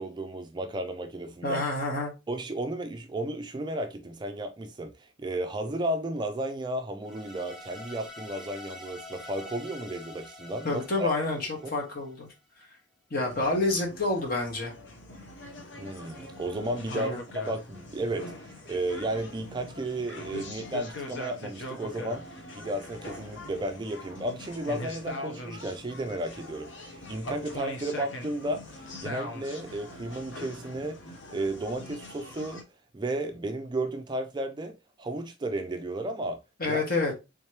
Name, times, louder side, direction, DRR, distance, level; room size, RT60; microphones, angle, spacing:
voice 1, 0.0-1.6 2.3-11.3 11.6-11.7 15.8-31.0 31.3-32.6 32.9-36.4 36.7-36.8, right 1 dB, 25° right, 0.3 m, -33 dB
voice 2, 1.4-2.1 10.6-12.3 13.1-14.7 16.9-17.2 36.6-37.1, left 2 dB, 50° left, 1.2 m, -28 dB
sound 1, 7.0-12.3, left 2 dB, ahead, 0.7 m, -46 dB
sound 2, 13.2-32.6, left 2 dB, 65° left, 0.7 m, -42 dB
3.5 x 2.9 x 3.2 m
head